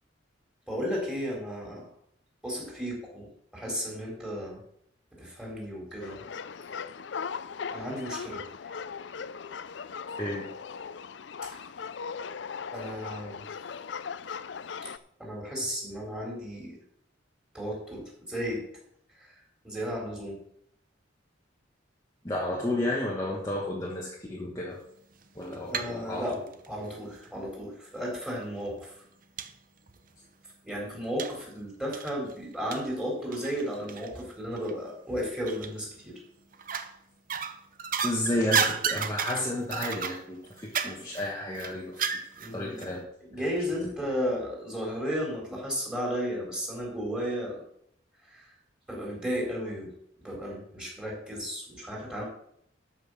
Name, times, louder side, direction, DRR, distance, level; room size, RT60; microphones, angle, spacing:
voice 1, 0.7-1.9 2.4-4.6 5.2-6.2 7.7-8.4 11.5-11.6 12.7-13.4 15.2-16.7 17.5-18.0 18.3-18.6 19.6-20.3 25.7-26.3 26.7-28.9 30.6-36.2 42.4-42.8 43.3-47.6 48.3-48.4 48.9-49.9 50.2-52.3, equal, 5° right, -2 dB, 3.9 m, -34 dB
sound 1, 6.0-15.0, left 6 dB, 65° left, 0.5 m, -38 dB
voice 2, 10.1-10.5 22.2-24.8 25.3-26.3 38.0-42.1 42.5-43.0 43.4-43.5, left 1 dB, 20° left, -3 dB, 1.5 m, -32 dB
sound 2, 25.2-26.0 26.3-27.4 28.1-28.2 28.7-28.8 29.4-29.5 29.9-30.0 31.2-31.4 31.9-34.2 34.6-34.7 35.5-36.0 36.5-36.9 37.3-42.5 42.8-42.9, right 6 dB, 45° right, 0.8 m, -32 dB
13.0 x 5.8 x 6.3 m, 0.70 s
head